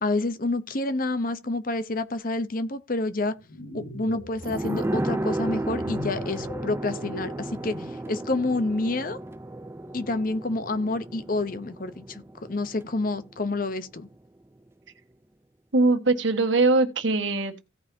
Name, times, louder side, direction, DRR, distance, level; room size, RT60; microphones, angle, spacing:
voice 1, 0.0-3.3 3.7-9.2 9.9-12.2 12.5-14.1, left 2 dB, 45° left, 0.8 m, -28 dB
sound 1, 3.3-8.1, left 1 dB, 80° left, 6.6 m, -41 dB
sound 2, 4.4-13.7 14.0-14.1, right 1 dB, 15° right, 0.5 m, -33 dB
voice 2, 15.7-17.6, right 3 dB, 75° right, 1.5 m, -22 dB
16.5 x 5.7 x 2.7 m
head